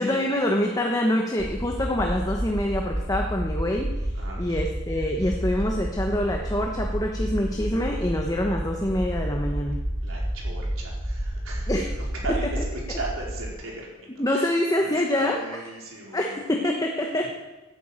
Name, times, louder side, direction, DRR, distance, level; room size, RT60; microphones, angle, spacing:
voice 1, 0.0-3.9 4.4-9.8 11.7-11.9 12.3-13.0 14.2-15.7 16.1-17.3, left 1 dB, 15° left, 1 dB, 1.2 m, -26 dB
sound 1, 1.4-13.5, equal, 15° right, 3.6 m, -30 dB
voice 2, 10.0-12.4 13.0-14.0 14.3-14.5 14.8-16.4, right 2 dB, 75° right, -3 dB, 4.6 m, -37 dB
11.5 x 9.4 x 9.0 m, 1.1 s
head